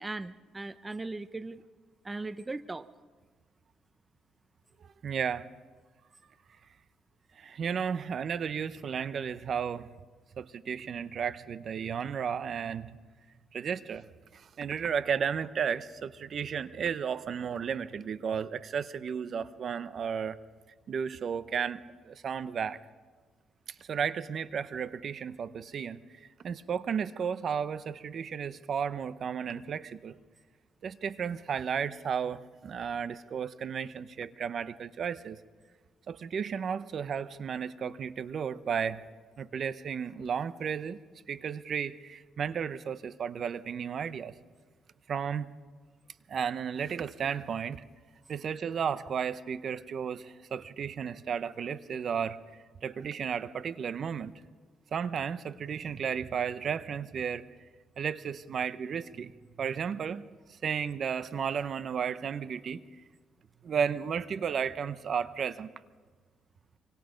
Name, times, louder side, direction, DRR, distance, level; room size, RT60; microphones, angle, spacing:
voice 1, 0.0-1.6 2.0-2.9, right 3 dB, 20° right, 13 dB, 0.7 m, -38 dB
voice 2, 4.8-5.5 7.4-9.9 10.4-13.0 13.5-14.1 14.3-20.4 20.9-22.8 23.8-30.2 30.8-35.4 36.1-39.1 39.4-41.0 41.3-44.3 45.1-45.5 46.3-47.8 48.3-52.4 52.8-54.3 54.9-57.5 58.0-59.3 59.6-60.3 60.6-62.8 63.6-65.7, right 7 dB, 55° right, 14 dB, 0.8 m, -33 dB
26.0 x 25.0 x 5.2 m, 1.5 s
cardioid pair, 90°, 0 cm